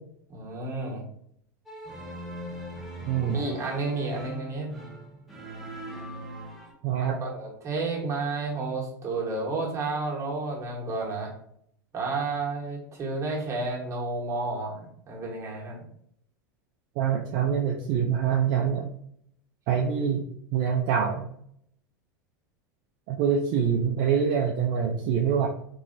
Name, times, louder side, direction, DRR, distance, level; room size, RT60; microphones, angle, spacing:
voice 1, 0.3-1.0 3.2-4.7 7.0-11.3 11.9-15.8, right 3 dB, 30° right, -3 dB, 1.2 m, -31 dB
sound 1, 1.7-6.7, equal, ahead, 1.2 m, -40 dB
voice 2, 3.1-3.4 6.8-7.2 17.0-18.8 19.7-20.2 20.5-21.2 23.1-25.5, right 7 dB, 55° right, 1 dB, 0.4 m, -25 dB
2.9 x 2.7 x 2.6 m, 0.69 s
hypercardioid pair, 90°, 11 cm